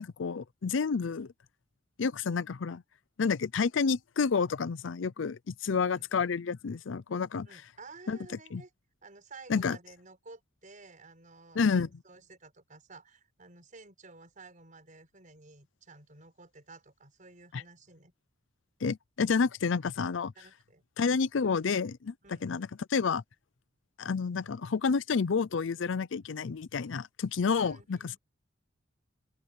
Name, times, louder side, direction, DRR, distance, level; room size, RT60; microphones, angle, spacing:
voice 1, 0.0-1.3 2.0-2.8 3.2-7.5 8.1-8.2 8.5-8.6 9.5-9.8 11.6-11.9 17.5-17.6 18.8-20.3 21.0-22.1 22.4-23.2 24.0-28.2, left 5 dB, 70° left, 0.5 m, -29 dB
voice 2, 7.4-8.7 9.0-18.1 20.4-21.2 22.2-22.5 27.6-28.2, right 3 dB, 45° right, 6.1 m, -53 dB
open air
head